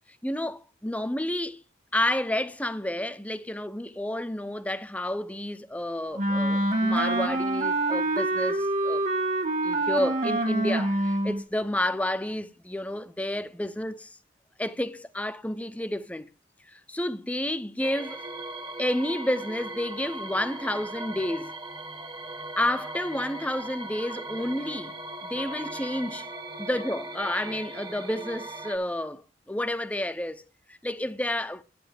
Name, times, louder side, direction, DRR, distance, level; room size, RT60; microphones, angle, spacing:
voice 1, 0.2-1.6 1.9-9.0 9.6-14.2 14.6-16.3 16.7-18.2 18.8-21.6 22.6-24.9 25.2-26.3 26.6-29.2 29.5-30.4 30.7-31.6, left 1 dB, 10° left, 0.6 m, -30 dB
Wind instrument woodwind instrument, 6.2-11.4, right 2 dB, 40° right, 1.5 m, -26 dB
sound 1, 17.8-28.8, right 2 dB, 25° right, 1.0 m, -38 dB
10.0 x 9.3 x 3.4 m
head